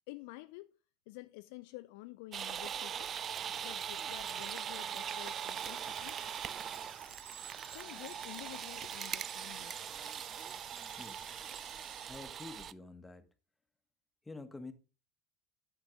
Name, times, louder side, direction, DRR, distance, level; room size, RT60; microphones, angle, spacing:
voice 1, 0.1-0.8 1.1-3.1 3.6-6.2 7.7-9.9, left 20 dB, 60° left, 0.4 m, -50 dB
sound 1, 2.3-12.7, right 8 dB, 35° right, 0.4 m, -41 dB
sound 2, 5.0-12.1, right 5 dB, 75° right, 1.7 m, -57 dB
voice 2, 11.0-11.5 12.1-13.3 14.2-14.7, left 3 dB, 10° left, 1.4 m, -48 dB
10.5 x 7.4 x 3.7 m
figure-of-eight pair, 70°, 0 cm